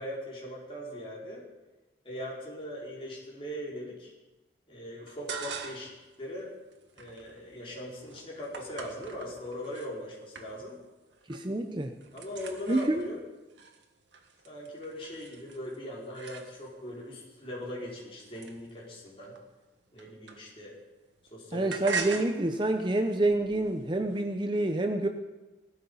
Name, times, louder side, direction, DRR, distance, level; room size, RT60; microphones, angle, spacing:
voice 1, 0.0-1.5 2.0-4.1 4.7-6.5 6.9-10.8 12.1-13.3 14.4-19.3 19.9-20.8 21.3-21.7, equal, 30° left, -5 dB, 4.8 m, -40 dB
sound 1, 5.1-6.0 6.4-9.9 10.3-10.9 11.1-11.6 11.8-16.9 17.5-20.8 21.1-24.2, right 5 dB, 80° right, 1.7 m, -42 dB
voice 2, 11.3-11.9 12.7-13.1 21.5-25.1, right 2 dB, 25° right, 6 dB, 0.7 m, -27 dB
17.5 x 13.0 x 5.6 m, 1.1 s
head